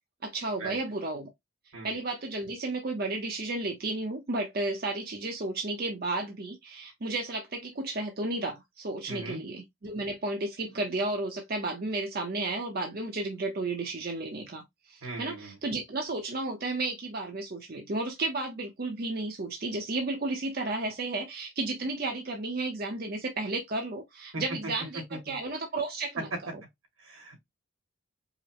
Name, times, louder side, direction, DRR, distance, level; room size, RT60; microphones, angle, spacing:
voice 1, 0.2-1.3 1.8-26.6, right 2 dB, 45° right, 0.6 m, -33 dB
voice 2, 9.1-9.4 15.0-15.5 24.3-24.4 25.3-25.4 27.0-27.4, right 2 dB, 85° right, 2.0 m, -39 dB
4.8 x 2.0 x 2.9 m
head